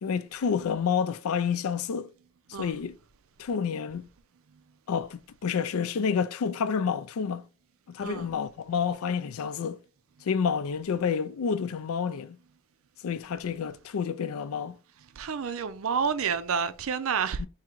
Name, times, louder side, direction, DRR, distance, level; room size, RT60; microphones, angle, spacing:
voice 1, 0.0-2.1 2.6-3.0 3.4-4.1 4.9-7.5 7.9-9.8 10.2-12.4 13.0-14.8 17.4-17.5, left 6 dB, 75° left, 0.4 m, -29 dB
voice 2, 15.2-17.4, right 6 dB, 70° right, 0.5 m, -29 dB
3.6 x 2.8 x 4.4 m
head